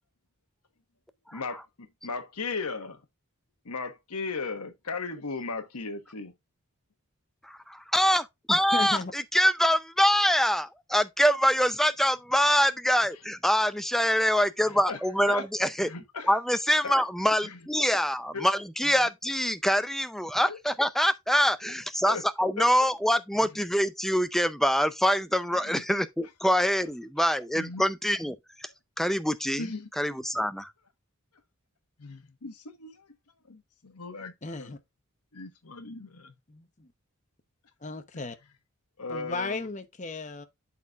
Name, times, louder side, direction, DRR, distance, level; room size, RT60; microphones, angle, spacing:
voice 1, 1.3-1.6 2.0-3.0 3.6-6.3 14.7-15.0 15.3-15.4 15.8-16.3 16.8-17.0 17.4-17.6 18.3-18.5 20.5-20.6 22.0-22.2 22.6-22.7 25.5-25.8 27.5-27.8 29.6-29.9 32.0-32.9 33.5-34.8 35.3-36.3 39.0-39.7, left 4 dB, 90° left, 1.2 m, -36 dB
voice 2, 7.4-15.9 16.2-28.7 29.0-29.7 30.0-30.7, equal, ahead, 0.4 m, -25 dB
voice 3, 8.5-9.1 34.4-34.8 36.5-36.9 37.8-38.4 39.1-40.5, left 3 dB, 35° left, 0.8 m, -35 dB
12.0 x 4.2 x 2.4 m
head